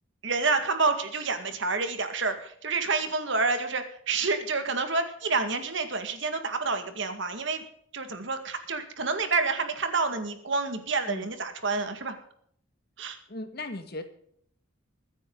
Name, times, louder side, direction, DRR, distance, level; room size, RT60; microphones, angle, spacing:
voice 1, 0.2-7.6 7.9-12.2 13.0-13.2, right 4 dB, 60° right, 7 dB, 2.1 m, -28 dB
voice 2, 13.3-14.0, left 2 dB, 50° left, 7 dB, 2.0 m, -37 dB
23.0 x 9.6 x 4.0 m, 0.64 s
head